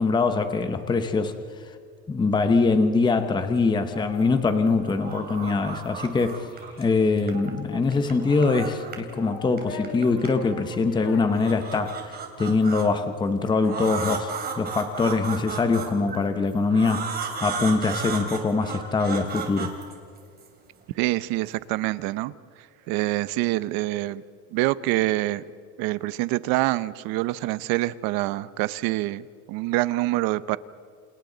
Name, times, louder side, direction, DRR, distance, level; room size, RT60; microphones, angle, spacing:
voice 1, 0.0-1.4 2.1-6.5 6.8-19.7, left 4 dB, 10° left, 9 dB, 0.8 m, -23 dB
sound 1, 3.9-4.5 4.8-6.8 7.2-9.1 9.4-10.7 11.2-12.9 13.6-16.2 16.7-20.5, right 5 dB, 25° right, 3.0 m, -34 dB
Child speech kid speaking, 5.2-6.9 7.6-8.5 9.0-12.1, left 3 dB, 30° left, 5.7 m, -43 dB
voice 2, 20.9-22.3 22.6-24.2 24.5-25.4 25.8-30.6, right 18 dB, 60° right, 16 dB, 0.8 m, -26 dB
29.0 x 28.5 x 4.0 m, 2.2 s
cardioid pair, 170°, 40 cm